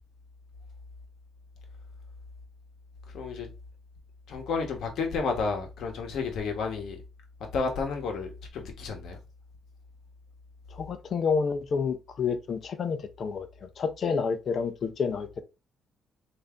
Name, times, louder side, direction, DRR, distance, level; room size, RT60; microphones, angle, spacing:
voice 1, 3.1-3.5 4.3-7.0 7.5-9.2, left 4 dB, 75° left, 1.1 m, -31 dB
voice 2, 10.7-15.4, left 5 dB, 55° left, 0.6 m, -29 dB
3.3 x 2.7 x 3.6 m
cardioid pair, 90°, 0 cm